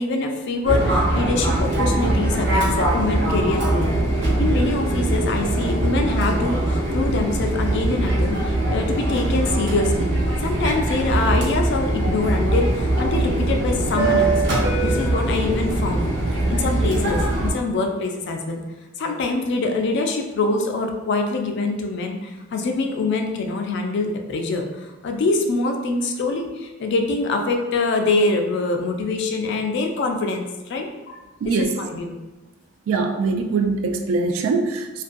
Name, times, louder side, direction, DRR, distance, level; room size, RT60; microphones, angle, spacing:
voice 1, 0.0-3.9 4.4-10.1 10.4-14.4 14.8-18.6 19.0-31.2 31.6-32.2, left 3 dB, 60° left, 4 dB, 0.3 m, -24 dB
Fixed-wing aircraft airplane, 0.6-17.5, right 1 dB, 60° right, 0.7 m, -22 dB
voice 2, 31.4-31.8 32.9-35.0, right 4 dB, 80° right, 6 dB, 0.3 m, -22 dB
2.4 x 2.2 x 2.5 m, 1.1 s
head